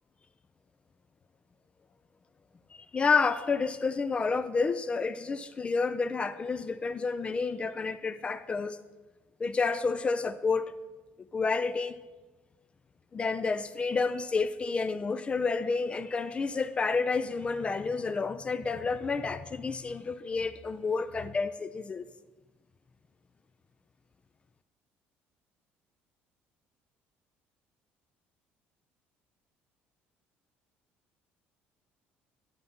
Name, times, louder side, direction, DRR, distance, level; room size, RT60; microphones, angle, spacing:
voice 1, 2.7-8.8 9.4-10.7 11.3-12.0 13.1-22.0, left 4 dB, 25° left, 0.3 m, -30 dB
11.0 x 9.3 x 2.8 m
cardioid pair, 105°, 4 cm